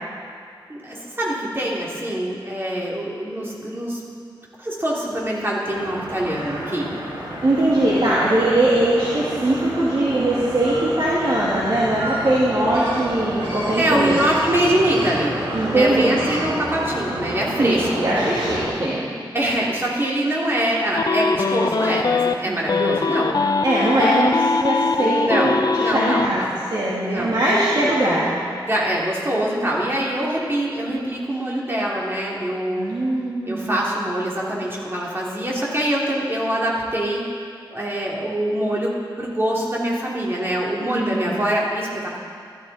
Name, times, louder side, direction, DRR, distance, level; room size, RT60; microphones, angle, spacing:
voice 1, 0.7-4.0 4.6-6.9 13.8-15.3 15.7-18.1 19.3-23.4 25.0-26.5 27.0-27.4 27.8-27.9 28.6-32.9 33.5-37.3 37.7-42.2, right 1 dB, 25° right, -5 dB, 3.0 m, -24 dB
sound 1, 5.7-18.7, right 1 dB, 80° right, 3.3 m, -30 dB
voice 2, 7.4-14.2 15.5-16.2 17.6-19.0 22.5-22.6 23.6-28.4 32.8-33.8 40.9-41.2, right 1 dB, 55° right, -8 dB, 2.3 m, -21 dB
sound 2, 21.0-22.3 22.7-26.3, left 4 dB, 50° left, 0.5 m, -21 dB
14.5 x 13.0 x 4.2 m, 2.2 s
wide cardioid pair, 85°, 9 cm